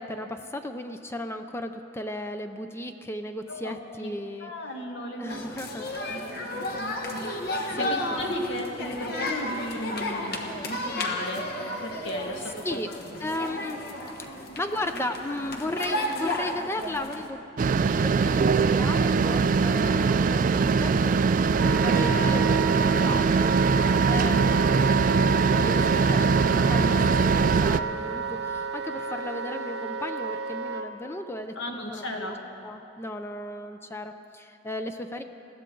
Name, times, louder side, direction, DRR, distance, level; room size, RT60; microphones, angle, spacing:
voice 1, 0.0-4.5 5.2-5.9 7.7-8.0 12.4-12.9 13.2-13.9 14.2-21.1 21.4-23.5 23.8-27.0 27.3-32.4 32.6-35.2, left 1 dB, 15° left, 7 dB, 0.5 m, -35 dB
voice 2, 3.5-4.1 4.4-5.5 6.0-11.5 11.8-12.8 14.0-14.1 24.5-24.7 31.6-32.4, left 1 dB, 70° left, 1 dB, 1.7 m, -36 dB
sound 1, 5.3-17.3, left 1 dB, 50° left, 1.2 m, -33 dB
sound 2, 17.6-27.8, right 5 dB, 45° right, 0.3 m, -22 dB
Wind instrument woodwind instrument, 21.5-30.9, right 5 dB, 60° right, 0.9 m, -30 dB
20.5 x 15.0 x 3.9 m, 3.0 s
head